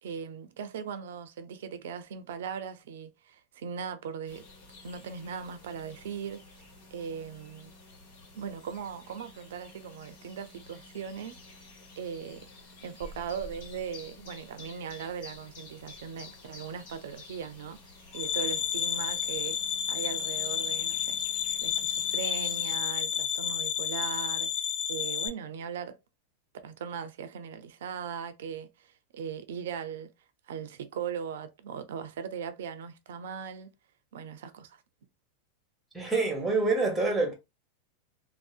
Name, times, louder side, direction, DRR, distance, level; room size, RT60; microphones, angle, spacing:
voice 1, 0.0-4.4 4.8-6.4 6.9-7.7 8.3-11.7 12.0-12.5 12.8-19.6 19.9-21.2 21.6-24.5 24.9-26.0 26.6-30.1 30.5-33.7 34.1-34.8, right 7 dB, 80° right, 0.4 m, -39 dB
sound 1, 4.3-22.7, left 2 dB, 65° left, 1.1 m, -51 dB
sound 2, 18.1-25.3, left 9 dB, 50° left, 0.5 m, -31 dB
voice 2, 35.9-37.3, right 3 dB, 10° right, 1.0 m, -26 dB
2.6 x 2.0 x 2.4 m
supercardioid pair, 140°, 0 cm